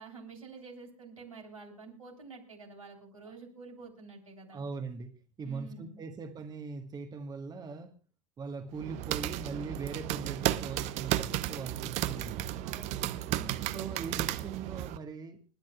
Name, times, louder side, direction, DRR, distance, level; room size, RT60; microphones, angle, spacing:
voice 1, 0.0-4.6 5.4-6.0 12.6-14.0, right 4 dB, 90° right, -1 dB, 3.5 m, -49 dB
voice 2, 4.5-5.1 5.4-7.9 8.4-12.5 13.7-15.4, right 4 dB, 25° right, 7 dB, 1.3 m, -41 dB
sound 1, 8.7-15.0, right 14 dB, 45° right, 0.7 m, -34 dB
29.0 x 10.5 x 2.2 m, 0.37 s
figure-of-eight pair, 85°, 17 cm